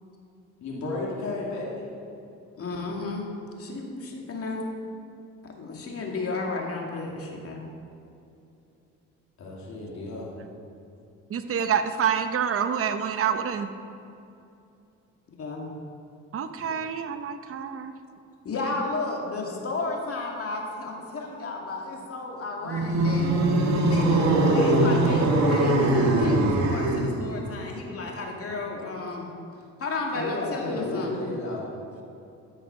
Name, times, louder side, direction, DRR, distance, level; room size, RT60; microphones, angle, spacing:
voice 1, 0.6-1.7 9.4-10.3 30.1-31.6, left 2 dB, 65° left, -4 dB, 2.8 m, -32 dB
voice 2, 2.6-3.3 3.6-4.6 5.4-7.6 15.4-15.7 18.4-23.3 23.7-29.3 29.8-31.2, left 3 dB, 50° left, 0 dB, 2.4 m, -33 dB
voice 3, 11.3-13.7 16.3-17.9, right 7 dB, 50° right, 8 dB, 0.8 m, -27 dB
sound 1, 22.6-27.3, right 1 dB, 65° right, 1.7 m, -21 dB
13.5 x 6.4 x 6.0 m, 2.7 s
cardioid pair, 90°, 30 cm